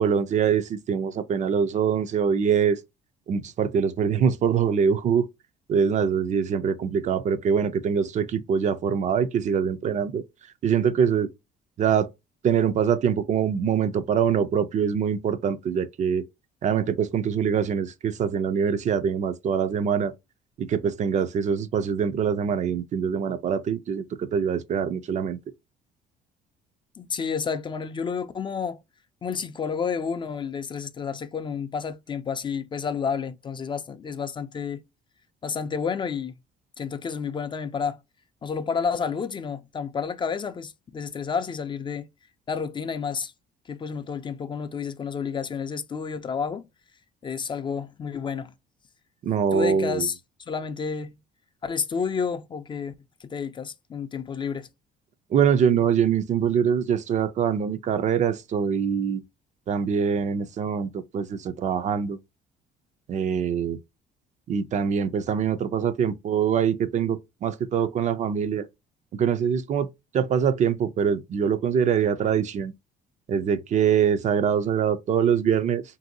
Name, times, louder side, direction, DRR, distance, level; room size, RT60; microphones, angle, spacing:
voice 1, 0.0-2.8 3.3-5.3 5.7-10.2 10.6-11.3 11.8-12.1 12.4-16.3 16.6-20.1 20.6-25.4 49.2-50.1 55.3-59.2 59.7-62.2 63.1-63.8 64.5-68.7 69.2-69.9 70.1-72.7 73.3-75.8, right 7 dB, 45° right, 0.4 m, -24 dB
voice 2, 27.0-28.8 29.2-34.8 35.4-36.3 36.8-38.0 38.4-42.1 42.5-43.3 43.7-46.6 47.2-48.5 49.5-50.1 50.5-51.2 51.6-52.9 53.2-54.7, left 6 dB, 30° left, 0.4 m, -30 dB
3.0 x 2.6 x 2.6 m
cardioid pair, 110°, 17 cm